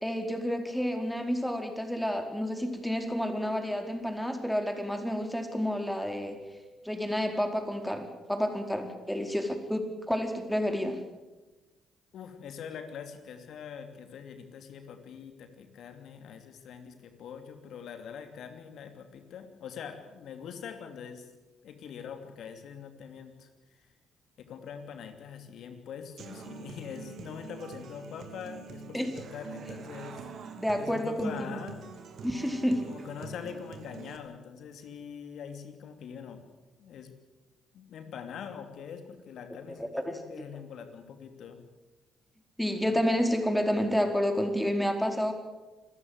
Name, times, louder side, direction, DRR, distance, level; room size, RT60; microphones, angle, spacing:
voice 1, 0.0-6.4 6.8-11.0 28.9-29.1 30.6-31.3 32.2-32.9 39.9-40.2 42.6-45.3, equal, 5° left, 5 dB, 4.5 m, -30 dB
voice 2, 12.1-21.3 21.6-23.5 23.8-23.9 24.4-30.2 30.8-31.9 32.9-36.4 36.8-37.1 37.7-41.6, left 7 dB, 65° left, 7 dB, 2.8 m, -43 dB
Human voice / Acoustic guitar, 26.2-34.2, right 6 dB, 60° right, 2.6 m, -45 dB
26.5 x 14.5 x 8.1 m, 1.2 s
hypercardioid pair, 45°, 0 cm